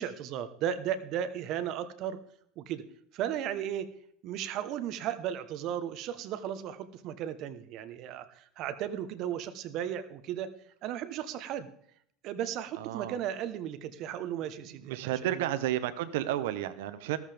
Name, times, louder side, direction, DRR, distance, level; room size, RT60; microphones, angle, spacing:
voice 1, 0.0-2.2 2.6-2.8 3.1-3.9 4.2-10.5 10.8-11.7 12.2-15.5, right 10 dB, 45° right, 11 dB, 1.1 m, -35 dB
voice 2, 12.8-13.2 14.8-17.2, right 13 dB, 80° right, 10 dB, 0.9 m, -32 dB
14.0 x 13.5 x 3.5 m, 0.67 s
supercardioid pair, 155°, 0 cm